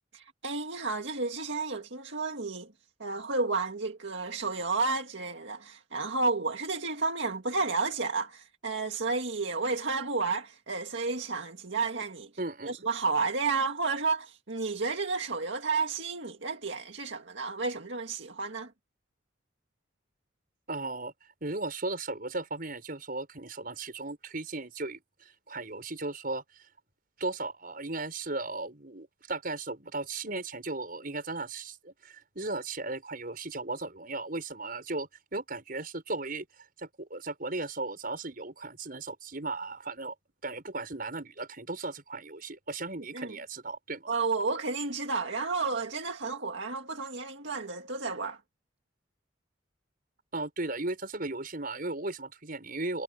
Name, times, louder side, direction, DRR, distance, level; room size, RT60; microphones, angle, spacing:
voice 1, 0.1-2.7 3.0-12.3 12.7-18.7 43.1-43.4 44.1-48.4, right 4 dB, 70° right, 2.0 m, -31 dB
voice 2, 12.4-12.8 20.7-21.1 21.4-26.7 27.2-36.4 36.8-40.1 40.4-44.1 50.3-53.0, right 2 dB, 50° right, 6.4 m, -36 dB
head